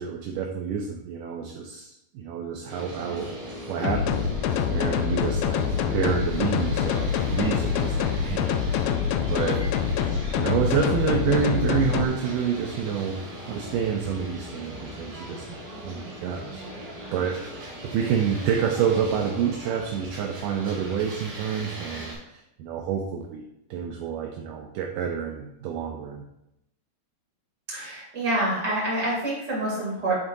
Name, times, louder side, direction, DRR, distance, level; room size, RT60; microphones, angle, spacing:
voice 1, 0.0-3.3 3.7-5.7 5.9-9.6 10.0-13.2 13.5-17.4 17.8-23.4 23.7-26.2, right 7 dB, 80° right, 2 dB, 2.0 m, -28 dB
sound 1, 2.7-22.1, equal, 50° right, 3.0 m, -39 dB
sound 2, 3.8-12.0, left 7 dB, 85° left, 1.9 m, -25 dB
voice 2, 27.7-30.1, right 1 dB, 25° right, -6 dB, 2.3 m, -27 dB
11.0 x 3.9 x 2.7 m, 0.84 s
omnidirectional pair, 4.3 m